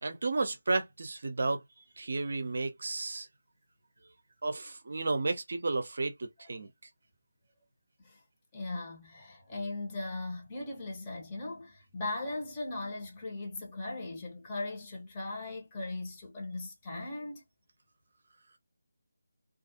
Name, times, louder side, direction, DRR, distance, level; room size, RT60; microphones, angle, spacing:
voice 1, 0.0-3.3 4.4-6.7, right 3 dB, 55° right, 0.5 m, -33 dB
voice 2, 8.5-17.4, left 2 dB, 20° left, 0.9 m, -38 dB
2.4 x 2.4 x 2.6 m
figure-of-eight pair, 155°, 0 cm